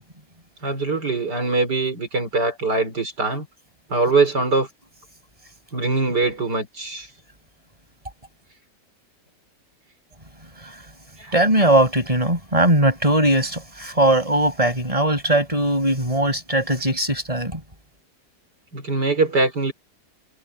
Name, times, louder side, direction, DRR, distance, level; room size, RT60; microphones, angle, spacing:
voice 1, 0.6-3.5 3.9-4.7 5.7-7.1 11.2-11.3 18.7-19.7, right 3 dB, 65° right, 5.2 m, -22 dB
voice 2, 11.3-17.6, right 1 dB, 20° right, 7.4 m, -19 dB
omnidirectional pair, 1.9 m